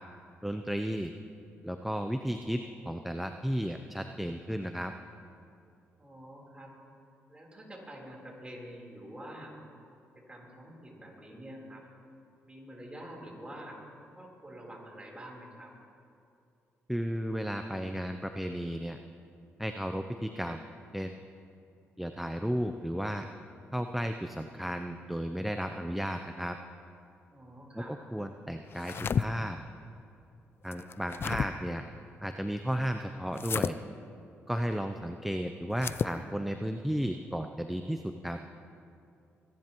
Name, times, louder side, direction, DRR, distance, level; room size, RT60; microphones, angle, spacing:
voice 1, 0.4-1.1 1.6-4.9 16.9-19.0 19.6-20.6 20.9-21.1 22.0-23.3 23.7-26.6 27.7-29.6 30.6-31.8 32.2-33.8 34.5-38.4, equal, 5° right, 6 dB, 0.6 m, -34 dB
voice 2, 6.0-6.7 7.3-9.5 10.2-11.8 12.4-13.8 14.2-15.7 27.3-28.0, right 1 dB, 20° right, -2 dB, 3.7 m, -47 dB
sound 1, 28.7-29.3 30.7-31.5 33.4-33.7 35.7-36.2, left 6 dB, 50° left, 0.4 m, -31 dB
24.5 x 11.0 x 3.0 m, 2.6 s
supercardioid pair, 65°, 5 cm